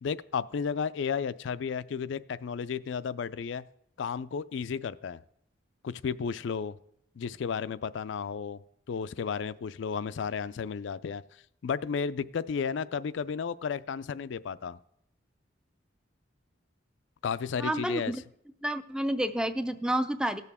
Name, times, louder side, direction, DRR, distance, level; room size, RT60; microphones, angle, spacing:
voice 1, 0.0-3.6 4.0-5.2 5.8-6.8 7.2-8.6 8.9-11.2 11.6-14.8 17.2-18.1, left 6 dB, 70° left, 16 dB, 0.4 m, -33 dB
voice 2, 17.6-18.2 18.6-20.4, right 1 dB, 5° right, 11 dB, 0.4 m, -29 dB
17.5 x 6.8 x 3.6 m, 0.75 s
head